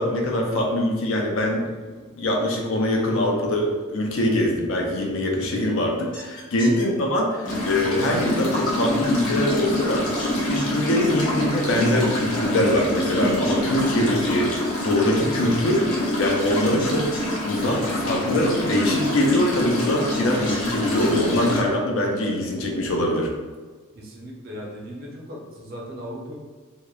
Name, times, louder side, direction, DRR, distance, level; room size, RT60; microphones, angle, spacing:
voice 1, 0.0-1.7 2.2-10.1 10.4-17.1 17.4-23.3, left 1 dB, 65° left, 0 dB, 0.5 m, -23 dB
sound 1, 6.1-6.8 10.1-10.8 13.4-14.1 16.8-17.3 20.1-20.7, left 2 dB, 40° left, 1.1 m, -39 dB
sound 2, 7.4-21.6, left 1 dB, 90° left, 0.8 m, -26 dB
voice 2, 23.9-26.4, equal, 45° right, -3 dB, 0.5 m, -37 dB
2.8 x 2.0 x 2.3 m, 1.4 s
head